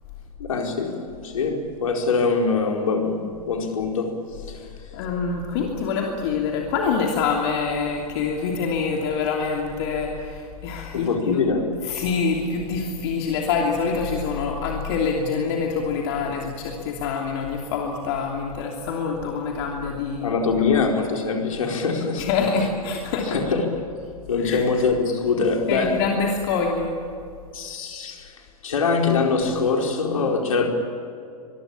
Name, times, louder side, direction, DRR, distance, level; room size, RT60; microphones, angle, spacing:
voice 1, 0.4-4.1 10.9-11.7 20.2-22.3 23.3-23.7 24.3-26.0 27.5-28.3 28.6-30.7, left 4 dB, 60° left, 2 dB, 4.6 m, -23 dB
voice 2, 4.9-11.4 11.8-20.3 22.2-23.4 24.4-24.6 25.7-26.9, left 5 dB, 45° left, 0 dB, 3.0 m, -25 dB
25.0 x 22.5 x 8.8 m, 2.4 s
figure-of-eight pair, 100°, 19 cm